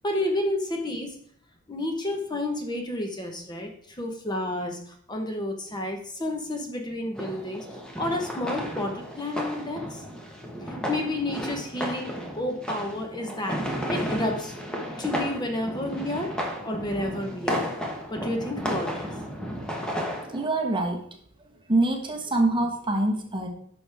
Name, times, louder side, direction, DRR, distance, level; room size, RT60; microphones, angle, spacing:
voice 1, 0.0-1.1 1.7-4.8 5.1-7.7 8.0-10.0 10.9-14.5 15.0-16.3 16.6-17.6 18.1-19.1, left 1 dB, 20° left, 3 dB, 1.1 m, -30 dB
sound 1, 7.2-20.5, equal, 5° left, 1.3 m, -33 dB
voice 2, 20.3-21.0 21.7-23.5, right 2 dB, 25° right, 2 dB, 1.3 m, -25 dB
10.5 x 6.2 x 3.5 m, 0.62 s
head